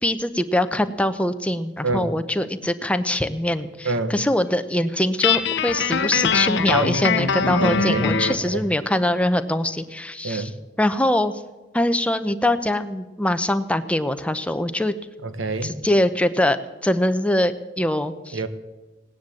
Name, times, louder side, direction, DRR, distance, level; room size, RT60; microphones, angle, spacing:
voice 1, 0.0-10.5 10.8-11.3 11.7-14.9 15.6-16.6 16.8-18.4, left 1 dB, 5° left, 10 dB, 0.7 m, -23 dB
voice 2, 3.8-4.2 6.7-6.9 7.6-8.7 10.2-10.6 15.2-15.8 18.3-18.5, right 2 dB, 75° right, 12 dB, 1.1 m, -27 dB
Guitar, 5.2-8.5, left 5 dB, 60° left, 0.8 m, -22 dB
17.5 x 10.0 x 7.6 m, 1.2 s
head